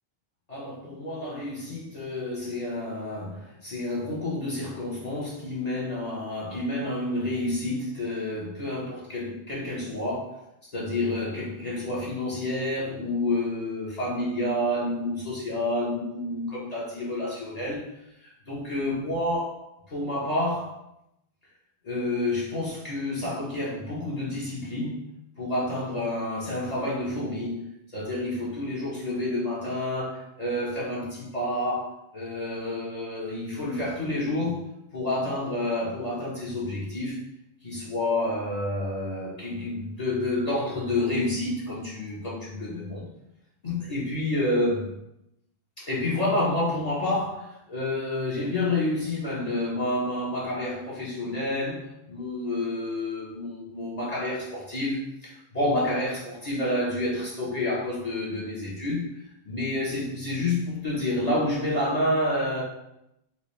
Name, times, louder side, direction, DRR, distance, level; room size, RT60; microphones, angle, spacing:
voice 1, 0.5-10.4 10.7-17.9 18.2-19.6 19.9-20.7 21.8-25.0 25.4-27.6 27.9-34.6 34.9-37.2 37.6-43.1 43.6-44.9 45.8-59.1 59.4-62.6, left 1 dB, 45° left, -8 dB, 0.9 m, -29 dB
4.2 x 2.1 x 3.0 m, 0.84 s
omnidirectional pair, 1.0 m